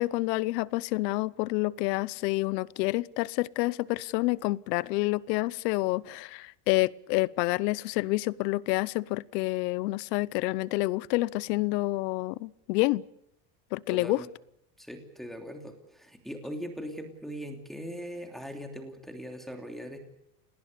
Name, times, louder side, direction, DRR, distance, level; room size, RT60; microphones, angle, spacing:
voice 1, 0.0-13.0 13.7-14.2, left 20 dB, 85° left, 0.9 m, -28 dB
voice 2, 13.9-14.3 14.8-20.0, equal, ahead, 2.9 m, -40 dB
28.5 x 19.5 x 6.8 m
cardioid pair, 155°, 48 cm